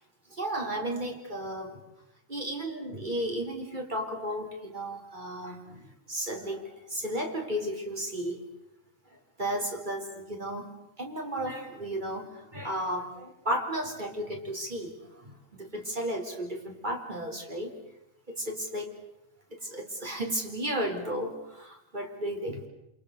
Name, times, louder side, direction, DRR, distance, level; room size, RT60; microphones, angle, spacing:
voice 1, 0.3-1.8 2.3-8.5 9.4-17.7 18.3-18.9 19.5-22.7, right 1 dB, 35° right, 2 dB, 4.5 m, -34 dB
28.5 x 27.5 x 6.7 m, 0.86 s
omnidirectional pair, 1.4 m